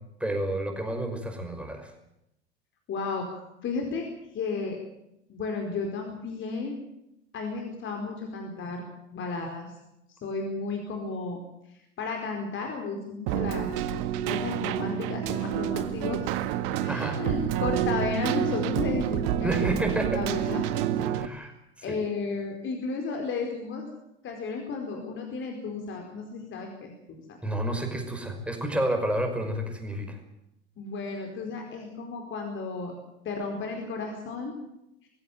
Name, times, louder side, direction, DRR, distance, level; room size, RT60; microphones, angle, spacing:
voice 1, 0.2-1.9 16.9-17.2 19.4-20.2 21.1-21.5 21.8-22.0 27.4-30.2, right 1 dB, 5° right, 4 dB, 5.6 m, -30 dB
voice 2, 2.9-4.1 4.3-4.8 5.3-6.8 7.3-8.8 9.1-9.7 10.2-11.4 11.7-13.7 14.3-16.3 16.8-20.7 21.3-21.5 21.8-23.9 24.2-27.4 30.8-32.9 33.2-34.5, left 4 dB, 35° left, 3 dB, 4.7 m, -33 dB
Keyboard (musical), 13.3-21.3, right 10 dB, 55° right, 1.7 m, -28 dB
23.0 x 16.0 x 9.2 m, 0.83 s
figure-of-eight pair, 80°, 35 cm